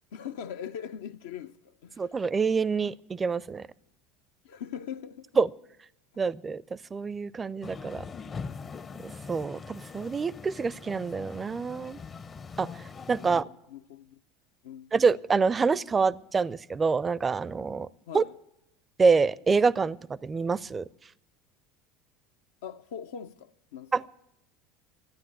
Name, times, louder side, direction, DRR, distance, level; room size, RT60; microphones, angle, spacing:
voice 1, 0.1-2.1 4.4-5.3 13.2-13.4 13.7-14.2 14.6-14.9 18.1-18.3 22.6-23.9, left 8 dB, 75° left, 0.5 m, -41 dB
voice 2, 2.0-3.7 5.4-5.5 6.2-6.6 6.9-8.0 9.0-12.0 12.6-13.4 14.9-17.9 18.1-18.2 19.0-20.9 23.9-24.1, right 5 dB, 25° right, 0.5 m, -26 dB
sound 1, 7.6-13.4, left 5 dB, 30° left, 0.6 m, -42 dB
13.0 x 9.6 x 8.8 m
hypercardioid pair, 75°, 0 cm